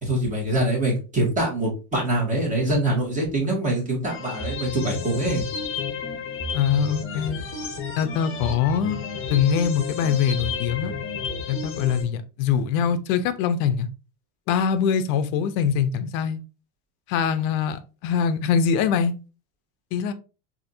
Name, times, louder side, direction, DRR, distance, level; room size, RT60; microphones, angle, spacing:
voice 1, 0.0-5.4, right 1 dB, 15° right, 1.9 m, -24 dB
sound 1, 4.0-12.0, left 4 dB, 25° left, 0.9 m, -32 dB
voice 2, 6.5-7.4 8.0-9.0 9.3-10.9 11.5-13.9 14.5-16.4 17.1-19.1 19.9-20.1, left 7 dB, 60° left, 0.6 m, -23 dB
4.1 x 2.8 x 2.6 m
supercardioid pair, 115°, 48 cm